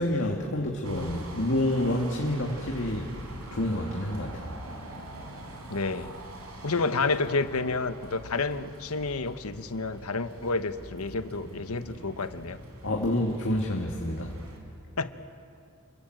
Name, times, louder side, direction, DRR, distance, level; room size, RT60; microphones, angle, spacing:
voice 1, 0.0-3.1 3.5-4.6 12.8-14.3, left 1 dB, 60° left, 1 dB, 2.1 m, -28 dB
sound 1, 0.8-14.6, right 1 dB, 85° right, 4.6 m, -44 dB
voice 2, 5.7-6.1 6.6-12.6 15.0-15.1, left 3 dB, 80° left, 11 dB, 1.1 m, -30 dB
29.0 x 23.5 x 7.9 m, 2.4 s
head